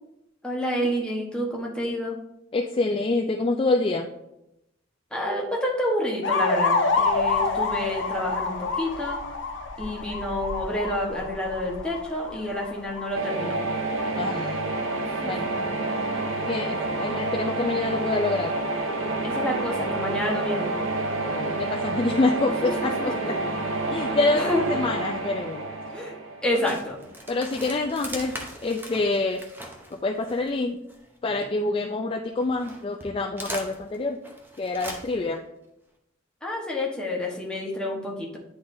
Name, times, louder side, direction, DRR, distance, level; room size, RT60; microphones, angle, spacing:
voice 1, 0.4-2.2 5.1-9.2 9.8-13.6 15.0-15.5 19.2-20.7 22.4-23.1 24.3-24.6 25.9-26.1 26.4-27.0 36.4-38.4, left 1 dB, 5° left, -3 dB, 1.1 m, -29 dB
voice 2, 2.5-4.1 14.2-14.6 15.3-15.4 16.5-18.6 21.2-23.3 23.9-25.6 26.6-26.8 27.3-28.3 28.6-29.4 29.9-30.8 31.2-34.2 34.6-35.4, left 3 dB, 25° left, 1 dB, 0.3 m, -26 dB
sound 1, 6.2-13.2, left 3 dB, 65° left, 0.6 m, -27 dB
sound 2, 13.1-27.0, right 2 dB, 80° right, 0.6 m, -29 dB
sound 3, 26.7-31.9 32.3-35.4, right 1 dB, 10° right, 0.7 m, -40 dB
10.0 x 3.9 x 2.6 m, 0.86 s
head